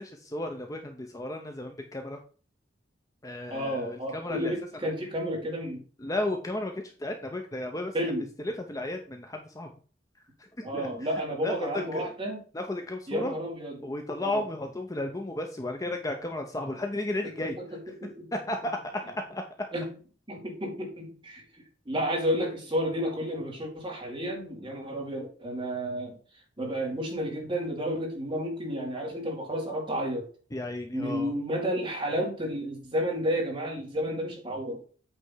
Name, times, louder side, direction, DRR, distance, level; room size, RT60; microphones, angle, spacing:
voice 1, 0.0-2.2 3.2-4.5 6.0-7.9 8.4-9.7 10.6-10.9 11.4-12.1 12.5-13.3 13.8-17.6 18.5-18.8 19.3-19.4 30.5-31.3, left 1 dB, 20° left, 4 dB, 0.7 m, -33 dB
voice 2, 3.5-5.8 7.9-8.3 10.6-12.4 13.1-13.8 14.2-14.4 17.2-18.3 19.7-19.9 20.3-26.2 26.6-30.3 30.9-34.8, equal, 25° right, -1 dB, 2.4 m, -31 dB
8.3 x 3.4 x 5.6 m, 0.40 s
head